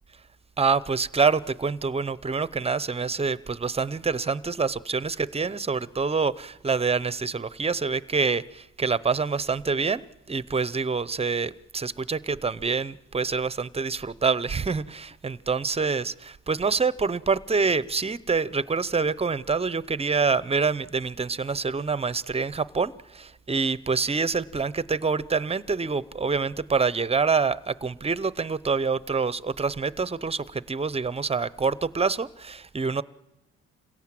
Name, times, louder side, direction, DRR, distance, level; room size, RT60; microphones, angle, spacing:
voice 1, 0.6-33.0, right 5 dB, 20° right, 18 dB, 0.7 m, -26 dB
27.0 x 17.0 x 7.6 m, 1.0 s
cardioid pair, 90°, 30 cm